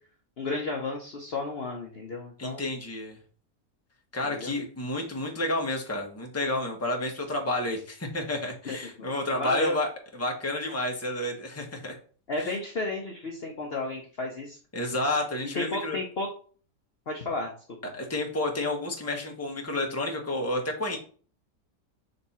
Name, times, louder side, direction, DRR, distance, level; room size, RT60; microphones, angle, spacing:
voice 1, 0.4-2.7 4.2-4.5 8.6-8.8 9.3-9.7 12.3-14.6 15.5-16.3 17.1-17.5, left 2 dB, 45° left, 0 dB, 0.9 m, -32 dB
voice 2, 2.4-3.2 4.1-9.9 10.2-11.9 12.4-12.5 14.7-16.0 17.9-21.0, left 1 dB, 10° left, 1 dB, 1.1 m, -30 dB
6.6 x 3.5 x 4.2 m, 0.42 s
omnidirectional pair, 1.7 m